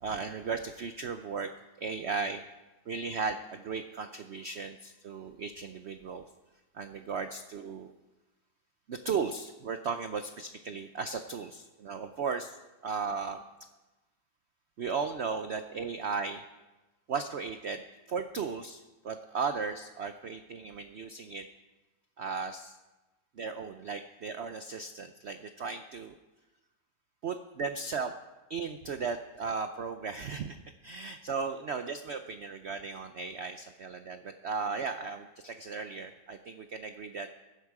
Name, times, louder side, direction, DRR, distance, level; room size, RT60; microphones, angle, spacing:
voice 1, 0.0-1.5 1.8-2.4 2.9-6.2 6.7-7.9 8.9-12.6 12.8-13.4 14.8-16.4 17.1-17.8 18.1-21.4 22.2-22.8 23.4-26.1 27.2-28.1 28.5-30.6 30.8-37.3, right 5 dB, 85° right, 8 dB, 0.5 m, -36 dB
18.0 x 11.0 x 4.8 m, 1.1 s
omnidirectional pair, 2.0 m